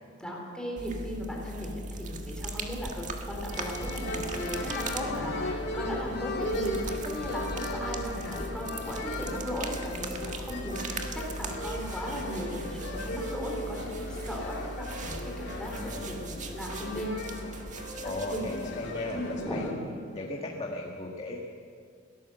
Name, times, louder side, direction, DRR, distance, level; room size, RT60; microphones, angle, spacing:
voice 1, 0.2-17.1 18.3-18.5 19.0-19.8, equal, 5° left, -2 dB, 3.8 m, -37 dB
sound 1, 0.8-19.7, right 2 dB, 40° right, 1.7 m, -39 dB
sound 2, 3.5-19.7, left 1 dB, 60° left, 2.7 m, -37 dB
voice 2, 15.7-16.2 18.0-19.7 20.1-21.4, left 1 dB, 30° left, -1 dB, 1.7 m, -37 dB
22.0 x 17.5 x 6.9 m, 2.2 s
head